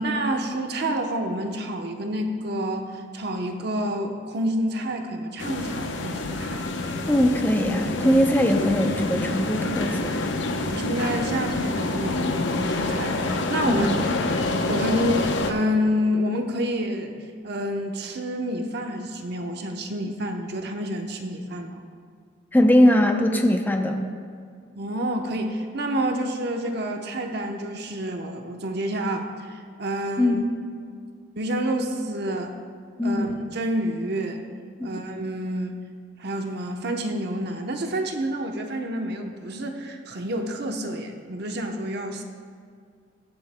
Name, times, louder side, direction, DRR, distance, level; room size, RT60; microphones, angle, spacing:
voice 1, 0.0-6.7 10.6-13.9 14.7-17.1 17.4-21.8 24.8-30.4 31.4-32.6 33.0-34.4 34.8-35.8 36.2-42.2, equal, 60° right, 4 dB, 0.9 m, -28 dB
sound 1, 5.4-15.5, left 2 dB, 75° left, 0.8 m, -27 dB
voice 2, 7.1-10.2 13.7-14.0 22.5-24.1 30.2-30.5 33.0-33.3 34.8-35.0, equal, 10° left, 4 dB, 0.6 m, -21 dB
22.0 x 7.6 x 2.2 m, 2.2 s
head